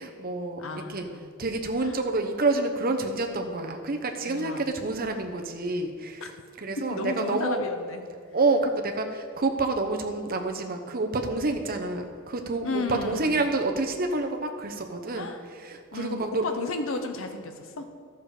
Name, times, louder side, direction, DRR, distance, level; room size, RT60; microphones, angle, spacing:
voice 1, 0.0-1.1 1.4-6.3 6.6-7.7 8.3-16.4, right 3 dB, 45° right, 5 dB, 0.9 m, -28 dB
voice 2, 0.6-1.3 1.8-2.1 4.2-4.7 6.2-6.3 6.8-8.0 12.6-13.5 15.1-15.5 15.9-17.9, left 2 dB, 65° left, 7 dB, 0.9 m, -34 dB
12.5 x 6.9 x 4.9 m, 2.1 s
head